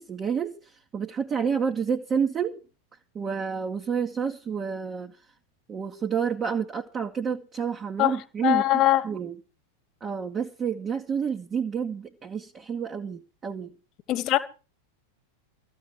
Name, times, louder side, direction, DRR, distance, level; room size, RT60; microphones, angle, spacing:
voice 1, 0.0-2.6 3.1-5.2 5.7-8.6 9.0-9.4 10.0-13.7, right 6 dB, 25° right, 1.2 m, -29 dB
voice 2, 8.4-9.0 14.1-14.4, left 15 dB, 35° left, 1.6 m, -21 dB
14.0 x 7.3 x 8.4 m
figure-of-eight pair, 90°, 0 cm